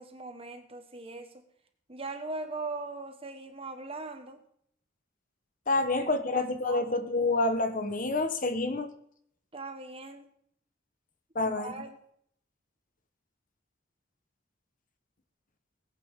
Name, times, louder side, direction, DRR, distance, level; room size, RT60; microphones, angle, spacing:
voice 1, 0.0-1.4 1.9-4.4 6.0-7.0 9.5-10.2 11.6-12.0, right 3 dB, 30° right, 7 dB, 1.3 m, -40 dB
voice 2, 5.7-8.9 11.3-11.7, left 2 dB, 40° left, 8 dB, 1.1 m, -28 dB
20.0 x 8.8 x 3.6 m, 0.66 s
head